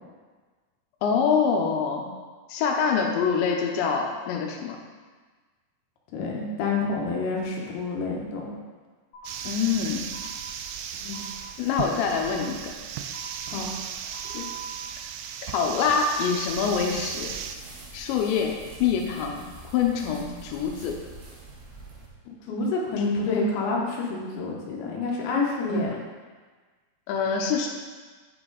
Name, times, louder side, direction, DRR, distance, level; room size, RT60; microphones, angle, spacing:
voice 1, 1.0-2.1 2.5-4.8 9.4-10.1 11.6-12.7 14.3-14.5 15.4-17.3 17.9-18.5 18.8-19.4 19.7-21.0 25.7-25.8 27.1-27.7, left 6 dB, 85° left, 1 dB, 3.0 m, -25 dB
voice 2, 6.1-8.6 11.0-11.2 13.5-13.7 22.3-25.9, left 3 dB, 70° left, -2 dB, 2.6 m, -28 dB
sound 1, 9.1-9.3 10.1-10.3 11.1-11.2 12.1-12.2 13.1-13.2 14.1-14.6, right 5 dB, 55° left, 1.8 m, -43 dB
sound 2, 9.3-17.6, right 8 dB, 85° right, 2.6 m, -36 dB
sound 3, 16.5-22.1, right 3 dB, 65° right, 3.1 m, -45 dB
9.0 x 6.0 x 3.9 m, 1.4 s
omnidirectional pair, 5.2 m